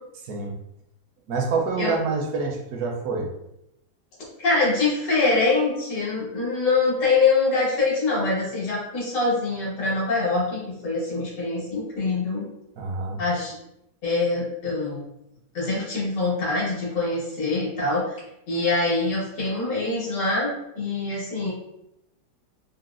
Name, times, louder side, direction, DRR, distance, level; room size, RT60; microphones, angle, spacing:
voice 1, 1.3-3.3 12.8-13.2, right 4 dB, 70° right, 1 dB, 1.0 m, -27 dB
voice 2, 4.4-12.4 13.2-13.5 14.0-15.0 15.5-18.2 18.5-21.5, left 3 dB, 90° left, -7 dB, 1.9 m, -24 dB
4.0 x 2.0 x 2.4 m, 0.83 s
omnidirectional pair, 1.8 m